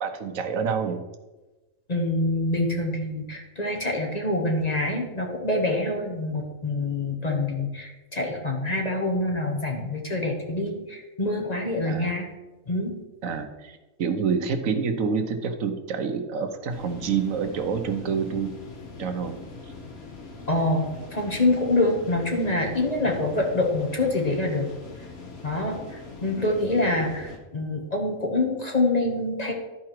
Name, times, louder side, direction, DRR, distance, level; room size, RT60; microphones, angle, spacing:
voice 1, 0.0-1.0 11.9-12.2 13.2-18.5 19.0-19.7, right 6 dB, 80° right, 7 dB, 1.2 m, -28 dB
voice 2, 1.9-12.3 12.7-13.0 20.5-24.7 25.4-29.5, left 2 dB, 30° left, 1 dB, 1.2 m, -26 dB
sound 1, 16.7-27.4, left 3 dB, 50° left, 1.4 m, -42 dB
12.0 x 4.8 x 4.5 m, 1.1 s
omnidirectional pair, 1.4 m